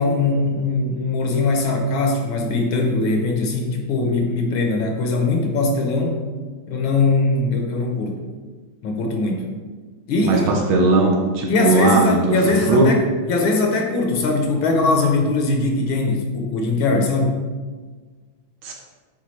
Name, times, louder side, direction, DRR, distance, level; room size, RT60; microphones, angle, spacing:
voice 1, 0.0-6.2 6.7-8.2 8.8-9.5 10.1-10.5 11.5-13.0 13.3-17.4, left 3 dB, 80° left, 3 dB, 1.7 m, -21 dB
voice 2, 10.2-12.2 12.5-12.9 18.6-18.7, right 2 dB, 90° right, 1 dB, 1.8 m, -18 dB
9.4 x 3.9 x 3.2 m, 1.4 s
omnidirectional pair, 2.2 m